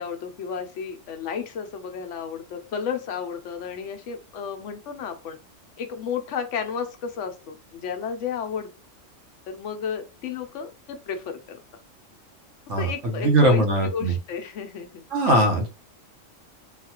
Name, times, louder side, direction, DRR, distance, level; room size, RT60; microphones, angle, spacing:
voice 1, 0.0-5.4 5.8-8.7 9.5-11.6 12.8-13.6 13.9-15.0, left 7 dB, 70° left, 6 dB, 0.9 m, -32 dB
voice 2, 13.2-14.1 15.1-15.7, right 1 dB, 65° right, 3 dB, 1.3 m, -20 dB
3.9 x 2.3 x 2.8 m, 0.30 s
omnidirectional pair, 1.3 m